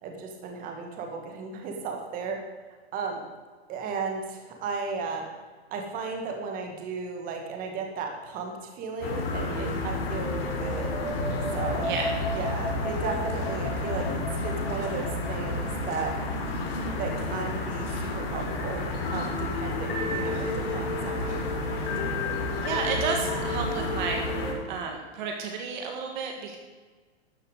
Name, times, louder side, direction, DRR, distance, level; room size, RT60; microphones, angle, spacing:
voice 1, 0.0-2.4 2.9-3.2 3.7-5.3 5.7-10.9 11.5-11.9 12.3-16.2 17.0-22.8, right 4 dB, 25° right, 3 dB, 2.1 m, -35 dB
sound 1, 9.0-24.5, left 2 dB, 60° left, 3.5 m, -30 dB
voice 2, 22.6-24.2 24.7-26.6, right 5 dB, 45° right, 3 dB, 1.8 m, -31 dB
13.0 x 7.5 x 8.2 m, 1.4 s
hypercardioid pair, 155°, 33 cm